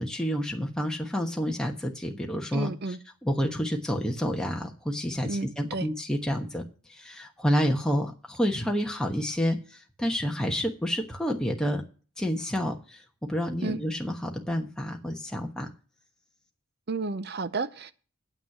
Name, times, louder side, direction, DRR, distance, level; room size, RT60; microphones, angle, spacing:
voice 1, 0.0-2.7 3.2-6.6 6.9-11.8 12.2-15.7, equal, 5° left, 1.2 m, -29 dB
voice 2, 2.5-3.0 5.2-5.9 13.6-13.8 16.9-17.9, right 3 dB, 45° right, 0.6 m, -32 dB
9.5 x 8.2 x 5.9 m
head